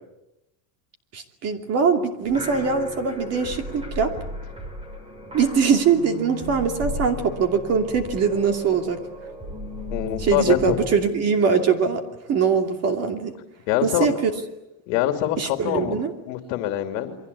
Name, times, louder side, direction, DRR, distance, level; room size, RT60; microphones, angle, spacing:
voice 1, 1.1-4.1 5.3-9.0 10.2-12.0 12.3-13.3 13.8-14.3 15.4-16.1, right 6 dB, 35° right, 6 dB, 2.7 m, -22 dB
sound 1, 2.2-10.9, equal, 10° right, 4.4 m, -35 dB
voice 2, 9.9-10.8 13.7-14.1 14.9-16.0 16.3-17.2, left 12 dB, 65° left, 6 dB, 2.9 m, -24 dB
29.0 x 23.5 x 8.5 m, 0.92 s
cardioid pair, 175°, 46 cm